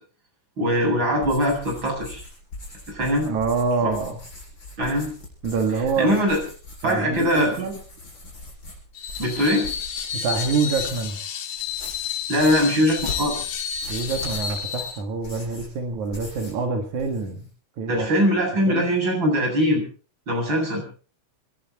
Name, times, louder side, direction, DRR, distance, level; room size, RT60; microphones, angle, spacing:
voice 1, 0.6-2.2 2.9-3.3 3.8-4.0 4.8-5.1 6.0-6.4 6.8-7.6 9.2-9.7 12.3-13.5 17.9-19.8 20.3-20.8, equal, 40° right, 0 dB, 8.8 m, -21 dB
sound 1, 1.2-11.2 11.6-16.6 16.9-17.5, left 2 dB, 40° left, 8.1 m, -41 dB
voice 2, 3.3-4.2 5.4-6.1 6.8-7.8 10.2-11.2 13.9-17.5 17.8-18.1 18.7-18.9, right 4 dB, 85° right, 4 dB, 3.3 m, -26 dB
Screech, 9.0-15.0, left 7 dB, 75° left, 3.1 m, -31 dB
28.5 x 11.5 x 4.3 m, 0.39 s
omnidirectional pair, 3.3 m